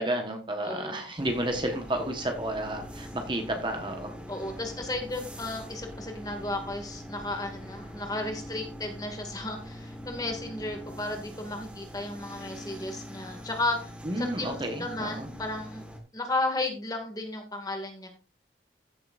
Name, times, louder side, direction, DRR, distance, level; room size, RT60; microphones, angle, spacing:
voice 1, 0.0-4.2 14.0-15.3, right 1 dB, 25° right, 4 dB, 1.2 m, -31 dB
voice 2, 0.7-1.0 4.3-13.9 14.2-15.8 16.1-18.1, left 2 dB, 20° left, 3 dB, 2.2 m, -34 dB
sound 1, 1.2-16.0, equal, 5° right, 1.6 m, -43 dB
15.0 x 7.6 x 2.6 m, 0.35 s
head